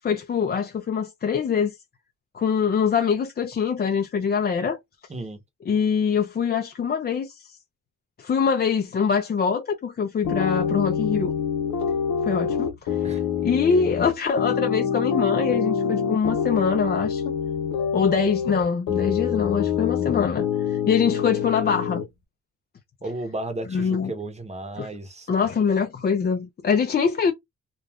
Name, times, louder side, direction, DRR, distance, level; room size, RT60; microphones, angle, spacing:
voice 1, 0.0-1.7 2.3-4.8 5.7-7.6 8.2-11.3 12.3-17.3 17.9-22.0 23.7-24.1 24.8-24.9 25.3-27.3, left 6 dB, 30° left, 0.4 m, -24 dB
voice 2, 5.1-5.4 13.0-13.2 23.0-25.3, right 2 dB, 20° right, 0.8 m, -33 dB
sound 1, 10.2-22.1, left 7 dB, 70° left, 0.7 m, -26 dB
2.3 x 2.3 x 3.4 m
cardioid pair, 105°, 32 cm